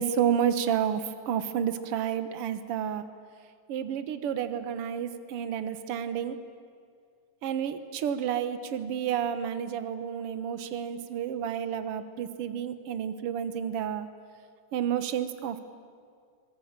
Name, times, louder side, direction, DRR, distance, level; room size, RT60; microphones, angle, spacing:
voice 1, 0.0-3.1 3.7-6.4 7.4-14.1 14.7-15.6, right 8 dB, 60° right, 11 dB, 1.9 m, -30 dB
25.0 x 19.0 x 8.9 m, 2.2 s
omnidirectional pair, 3.3 m